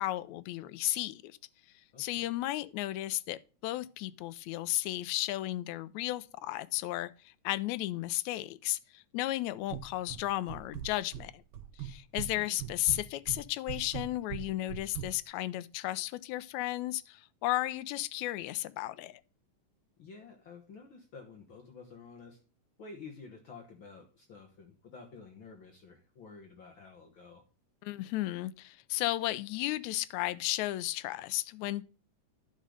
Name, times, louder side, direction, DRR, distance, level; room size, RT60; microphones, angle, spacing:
voice 1, 0.0-1.4 2.0-11.4 11.8-19.2 27.8-31.8, left 16 dB, 80° left, 1.7 m, -34 dB
voice 2, 1.9-2.3 12.3-12.6 20.0-22.4 22.8-27.4, left 4 dB, 55° left, 1.4 m, -50 dB
sound 1, 9.7-10.2 10.5-11.3 11.5-12.3 12.6-15.1, right 10 dB, 65° right, 1.5 m, -39 dB
10.5 x 5.4 x 5.0 m
omnidirectional pair, 3.7 m